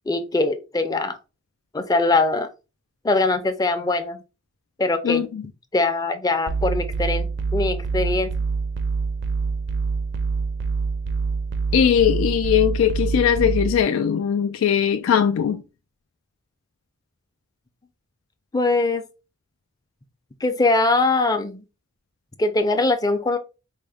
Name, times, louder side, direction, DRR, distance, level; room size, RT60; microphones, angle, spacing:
voice 1, 0.1-1.2 1.7-2.5 3.0-4.2 4.8-5.3 5.7-8.3 18.5-19.0 20.4-21.6 22.4-23.4, left 3 dB, 20° left, 0.4 m, -22 dB
voice 2, 5.0-5.4 11.7-15.6, left 8 dB, 90° left, 0.3 m, -20 dB
sound 1, 6.5-13.8, right 4 dB, 60° right, 0.5 m, -25 dB
4.4 x 2.0 x 3.3 m
head